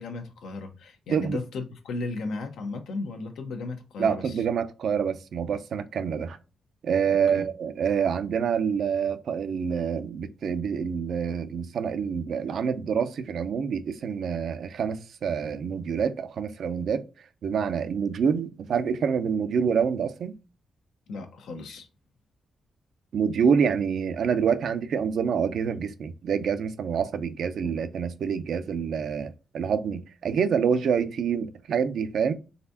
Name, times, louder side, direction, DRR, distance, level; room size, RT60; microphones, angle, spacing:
voice 1, 0.0-4.4 7.3-7.5 21.1-21.9, left 3 dB, 90° left, 0.9 m, -35 dB
voice 2, 1.1-1.4 4.0-6.4 6.8-17.0 17.4-20.3 23.1-32.3, right 6 dB, 70° right, 0.5 m, -27 dB
4.0 x 3.5 x 2.7 m
cardioid pair, 95°, 0 cm